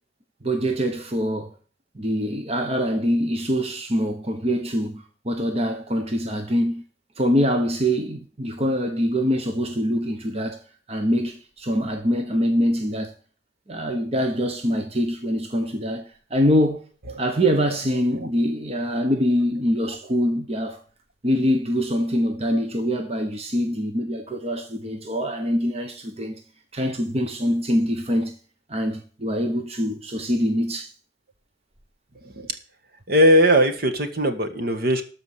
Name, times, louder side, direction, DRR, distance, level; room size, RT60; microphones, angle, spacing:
voice 1, 0.4-1.5 1.9-6.8 7.2-10.6 10.9-13.1 13.7-16.8 17.2-20.8 21.2-26.4 26.7-28.3 28.7-30.9, equal, 35° right, 1.2 m, -24 dB
voice 2, 33.1-35.0, equal, 55° right, 1.7 m, -19 dB
13.5 x 5.1 x 8.2 m
head